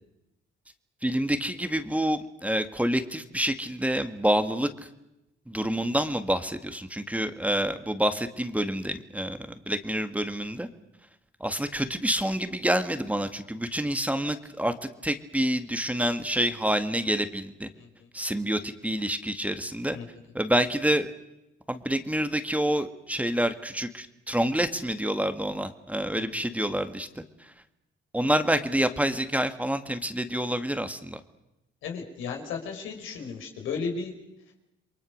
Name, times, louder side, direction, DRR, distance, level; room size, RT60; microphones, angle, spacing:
voice 1, 1.0-4.7 5.5-9.4 9.7-10.7 11.4-14.7 15.0-17.7 18.1-20.0 20.3-21.1 21.7-27.5 28.1-31.2, right 1 dB, 5° right, 9 dB, 2.0 m, -27 dB
voice 2, 17.8-18.1 19.9-20.1 26.1-26.2 31.8-34.1, left 5 dB, 90° left, 3 dB, 5.4 m, -34 dB
29.0 x 22.5 x 6.6 m, 0.90 s
cardioid pair, 90°, 20 cm